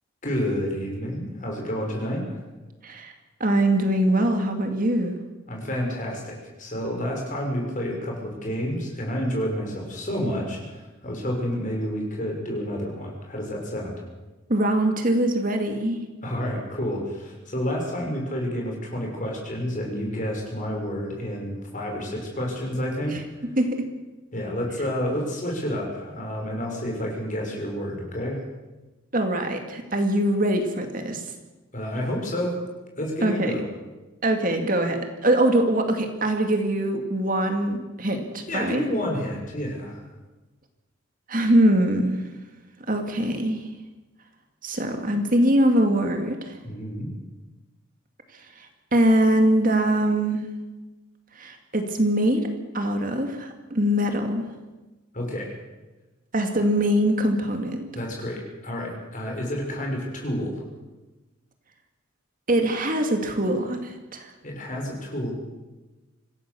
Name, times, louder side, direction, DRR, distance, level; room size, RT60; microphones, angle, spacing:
voice 1, 0.2-2.4 5.5-14.0 16.2-23.5 24.3-28.4 31.7-32.6 33.0-33.6 38.5-40.1 46.6-47.1 55.1-55.5 57.9-60.6 64.4-65.5, equal, 35° left, 0 dB, 6.0 m, -29 dB
voice 2, 3.4-5.2 14.5-16.0 23.1-23.2 23.6-23.9 29.1-31.2 33.2-33.6 34.2-38.8 41.3-42.2 42.9-43.6 44.6-46.6 48.3-48.7 48.9-50.5 51.4-52.4 52.7-54.4 56.3-57.9 62.5-64.3, right 1 dB, 40° right, 5 dB, 2.2 m, -23 dB
25.5 x 16.5 x 7.0 m, 1.1 s
head